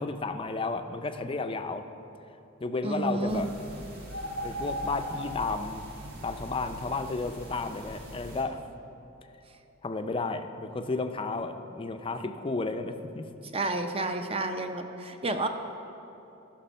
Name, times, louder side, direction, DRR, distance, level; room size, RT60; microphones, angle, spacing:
voice 1, 0.0-1.9 2.6-3.5 4.4-5.9 6.2-8.6 9.8-13.3, left 3 dB, 25° left, 8 dB, 0.5 m, -32 dB
voice 2, 2.8-3.5 13.5-15.5, right 2 dB, 30° right, 7 dB, 0.6 m, -30 dB
sound 1, 3.3-8.4, equal, 50° right, 1.8 m, -39 dB
14.0 x 6.1 x 5.5 m, 3.0 s
head